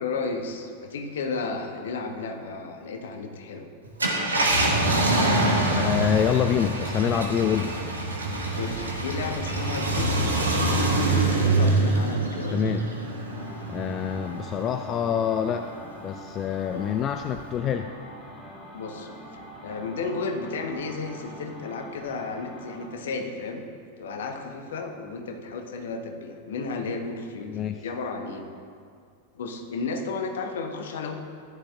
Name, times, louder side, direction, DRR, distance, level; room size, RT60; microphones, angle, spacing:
voice 1, 0.0-3.7 8.6-10.4 11.3-12.5 16.7-16.8 18.7-19.1 19.6-23.6 24.0-28.5 29.3-31.1, left 4 dB, 60° left, 4 dB, 1.0 m, -33 dB
Car, 3.8-14.7 15.2-15.3 17.3-17.5, right 2 dB, 75° right, 1.4 m, -25 dB
voice 2, 5.8-7.7 12.5-12.8 13.7-15.7 16.0-17.9 27.4-27.7, left 9 dB, 30° left, 7 dB, 0.4 m, -26 dB
sound 1, 13.3-22.9, equal, 10° left, 2.2 m, -44 dB
14.5 x 10.5 x 2.4 m, 2.3 s
figure-of-eight pair, 90°, 0 cm